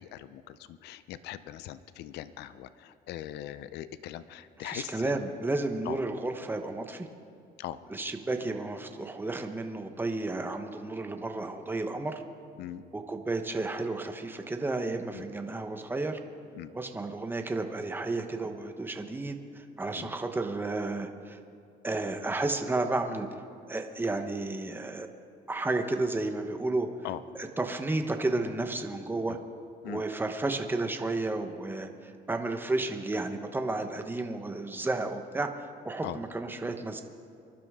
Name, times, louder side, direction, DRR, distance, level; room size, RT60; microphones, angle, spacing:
voice 1, 0.0-5.3 5.9-6.0 7.6-7.8 12.6-12.8 15.1-15.2 16.6-16.7 20.0-20.1 27.0-27.2 29.3-29.4 29.8-30.0 36.0-36.2, left 12 dB, 80° left, 14 dB, 0.6 m, -40 dB
voice 2, 4.6-7.1 7.9-12.2 12.9-16.2 16.7-21.4 21.8-23.3 23.7-25.1 25.5-26.9 27.4-29.4 29.8-37.0, right 2 dB, 10° right, 5 dB, 1.1 m, -32 dB
24.0 x 12.0 x 3.7 m, 2.5 s
cardioid pair, 110°, 17 cm